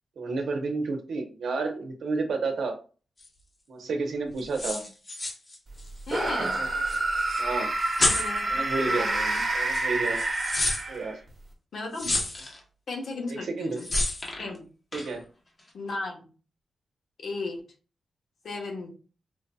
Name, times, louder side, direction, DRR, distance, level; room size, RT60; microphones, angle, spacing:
voice 1, 0.2-2.7 3.7-4.8 6.2-6.7 7.4-7.7 8.5-9.1 9.5-10.2 10.9-11.2 13.3-13.8 14.9-15.2, right 3 dB, 75° right, 4 dB, 0.7 m, -31 dB
sound 1, 3.2-3.3 4.4-6.2 6.5-6.6 6.9-7.4 7.8-8.4 9.3-9.4 9.7-10.8 11.9-12.6 13.8-14.5 14.9-15.2, left 2 dB, 30° left, 0.9 m, -30 dB
voice 2, 6.1-6.6 8.0-9.4 11.7-12.1 12.9-13.9 14.4-14.7 15.7-16.3 17.2-17.6 18.4-18.9, left 3 dB, 65° left, 1 dB, 1.0 m, -35 dB
sound 2, 6.1-11.3, right 2 dB, 40° right, 0.9 m, -28 dB
4.5 x 2.7 x 2.2 m, 0.36 s
wide cardioid pair, 140°, 0 cm